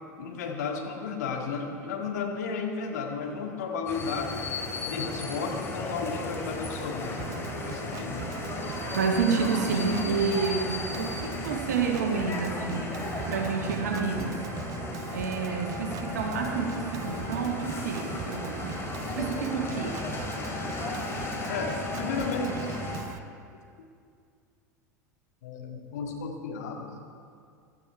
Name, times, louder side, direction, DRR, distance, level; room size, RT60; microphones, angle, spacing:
voice 1, 0.2-4.5 4.9-7.3 7.6-8.3 21.5-22.6 25.4-27.0, left 5 dB, 65° left, 1 dB, 1.9 m, -33 dB
sound 1, 3.9-23.0, left 2 dB, 25° left, 2.5 m, -35 dB
Organ, 7.2-23.2, right 10 dB, 35° right, 0.5 m, -41 dB
voice 2, 8.9-12.9 13.3-14.4 15.1-20.0, right 5 dB, 65° right, 2 dB, 1.5 m, -29 dB
17.0 x 12.5 x 4.6 m, 2.3 s
figure-of-eight pair, 80°, 10 cm